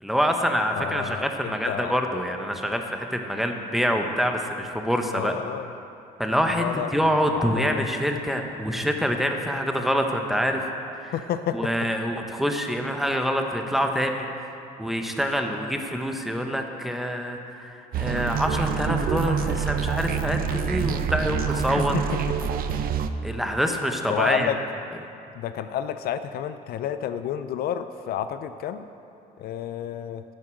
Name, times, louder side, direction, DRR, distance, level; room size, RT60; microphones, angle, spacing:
voice 1, 0.0-5.3 6.2-6.6 6.9-10.7 10.9-11.1 11.5-14.3 14.8-21.9 23.2-24.5, equal, ahead, 3 dB, 1.1 m, -26 dB
voice 2, 0.8-2.0 5.1-5.7 6.6-7.9 11.1-11.7 21.8-22.5 24.1-24.6 25.3-28.9 29.4-30.2, left 9 dB, 65° left, 10 dB, 0.5 m, -30 dB
sound 1, 17.9-23.1, right 7 dB, 60° right, 0.6 m, -26 dB
11.0 x 9.3 x 6.4 m, 2.7 s
cardioid pair, 110°, 17 cm